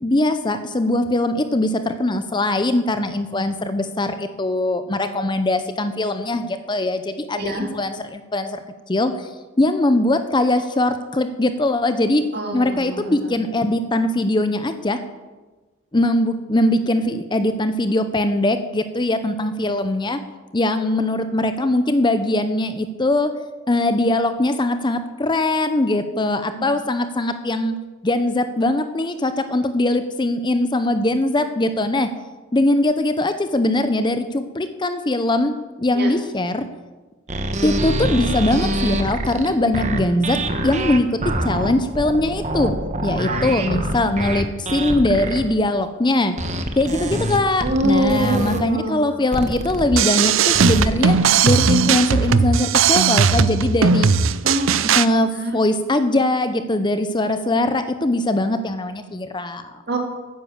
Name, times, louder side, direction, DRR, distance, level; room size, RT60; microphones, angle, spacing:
voice 1, 0.0-8.6 8.9-9.3 9.6-12.2 12.5-15.0 15.9-20.2 20.5-23.3 23.7-27.7 28.0-32.1 32.5-35.5 35.8-36.7 37.6-40.4 40.6-41.2 41.4-42.7 43.0-46.3 46.8-51.2 51.4-54.1 55.0-59.8, left 1 dB, 20° left, 9 dB, 0.6 m, -21 dB
voice 2, 7.3-7.7 12.3-13.4 26.6-26.7 35.9-36.1 43.3-43.7 47.6-49.0 54.4-54.9 55.4-55.6 59.9-60.0, right 1 dB, 50° right, 2 dB, 2.3 m, -24 dB
sound 1, 37.3-45.4 46.4-48.6 49.3-49.8 50.5-51.3, right 1 dB, 35° right, 1.0 m, -25 dB
sound 2, 49.9-55.1, right 6 dB, 70° right, 0.5 m, -17 dB
10.5 x 9.6 x 7.3 m, 1.2 s
head